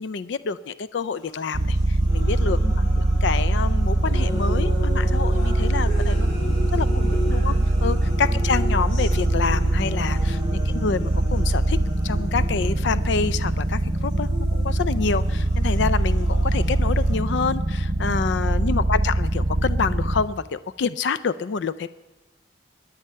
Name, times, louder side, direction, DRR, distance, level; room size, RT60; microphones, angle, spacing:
voice 1, 0.0-2.6 3.2-6.9 7.3-7.5 7.8-11.8 12.0-21.9, left 5 dB, 65° left, 16 dB, 0.4 m, -27 dB
sound 1, 1.1-17.1, equal, 90° left, 7.2 m, -37 dB
sound 2, 1.5-20.2, right 1 dB, 45° right, 0.8 m, -22 dB
voice 2, 2.5-3.0 6.7-7.6 8.3-8.7 10.5-10.9 18.6-19.0, right 1 dB, 15° left, 0 dB, 2.2 m, -40 dB
23.5 x 10.0 x 5.6 m, 1.2 s
head